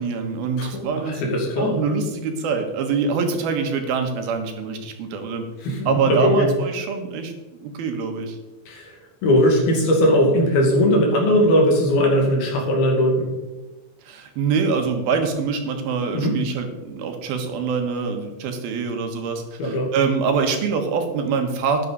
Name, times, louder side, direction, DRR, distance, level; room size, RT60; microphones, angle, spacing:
voice 1, 0.0-5.4 5.9-7.3 7.6-8.4 14.1-21.9, right 5 dB, 85° right, 5 dB, 3.3 m, -24 dB
voice 2, 0.6-1.8 5.6-6.5 8.7-8.9 9.2-13.3 16.1-16.4 19.6-19.9, equal, 80° left, 0 dB, 4.3 m, -19 dB
12.5 x 9.9 x 4.1 m, 1.1 s
omnidirectional pair, 4.2 m